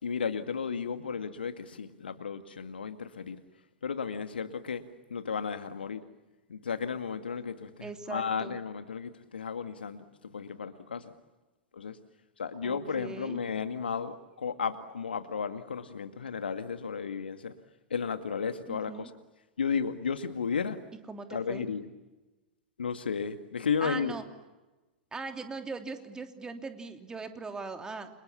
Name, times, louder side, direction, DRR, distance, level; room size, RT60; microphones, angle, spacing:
voice 1, 0.0-3.4 3.8-4.8 5.1-6.0 6.5-11.1 11.7-12.0 12.4-17.5 17.9-19.1 19.6-20.8 21.3-21.9 22.8-24.2, left 6 dB, 75° left, 9 dB, 2.0 m, -34 dB
voice 2, 7.8-8.6 12.6-13.4 18.7-19.1 21.1-21.6 23.8-24.2 25.1-28.1, right 4 dB, 15° right, 6 dB, 3.1 m, -40 dB
30.0 x 27.5 x 7.3 m, 1.1 s
figure-of-eight pair, 100°, 6 cm